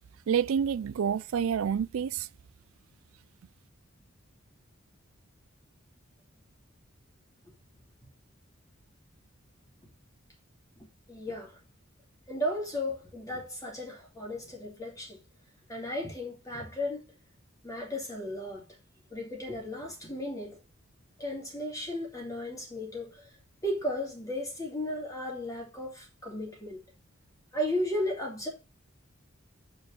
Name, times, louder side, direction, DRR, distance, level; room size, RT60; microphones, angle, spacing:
voice 1, 0.3-2.3, right 7 dB, 75° right, 0.4 m, -28 dB
voice 2, 11.1-11.6 12.3-15.2 15.7-17.0 17.6-18.6 19.1-20.6 21.2-23.3 23.6-26.8 27.5-28.5, left 1 dB, 15° left, 2.6 m, -35 dB
5.2 x 5.2 x 5.0 m
head